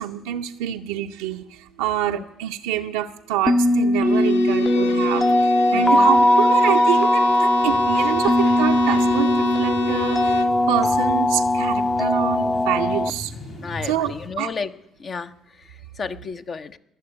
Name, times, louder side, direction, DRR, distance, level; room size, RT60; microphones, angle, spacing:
voice 1, 0.0-13.3 13.8-14.5, right 12 dB, 80° right, 3 dB, 0.5 m, -26 dB
sound 1, 3.5-13.1, left 1 dB, 15° left, 0.6 m, -19 dB
Bowed string instrument, 4.0-10.6, left 8 dB, 80° left, 0.5 m, -33 dB
voice 2, 5.7-6.1 13.6-14.7 15.0-16.8, left 5 dB, 45° left, 10 dB, 0.8 m, -33 dB
sound 2, 7.7-14.3, left 1 dB, 65° left, 3.3 m, -39 dB
20.0 x 7.0 x 9.6 m, 0.82 s
hypercardioid pair, 55°, 0 cm